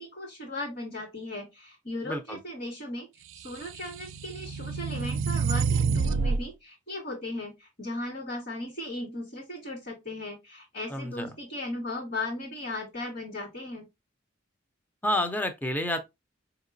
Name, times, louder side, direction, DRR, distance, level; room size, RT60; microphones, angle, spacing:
voice 1, 0.0-13.8, left 1 dB, 50° left, 1.8 m, -37 dB
voice 2, 2.1-2.4 10.9-11.3 15.0-16.0, left 1 dB, 10° left, 0.5 m, -29 dB
sound 1, 3.5-6.4, right 5 dB, 85° right, 0.3 m, -28 dB
4.8 x 2.9 x 2.6 m
head